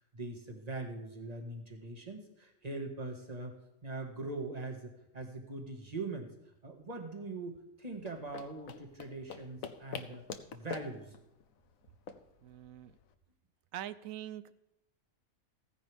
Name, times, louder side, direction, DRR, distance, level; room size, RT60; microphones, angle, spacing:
voice 1, 0.0-6.3 6.6-10.2 10.5-11.2, right 2 dB, 30° right, 3 dB, 1.7 m, -42 dB
sound 1, 7.9-13.1, left 7 dB, 85° left, 1.2 m, -47 dB
voice 2, 12.4-12.9 13.7-14.5, right 12 dB, 80° right, 15 dB, 1.0 m, -43 dB
15.5 x 9.9 x 3.4 m, 0.90 s
omnidirectional pair, 1.4 m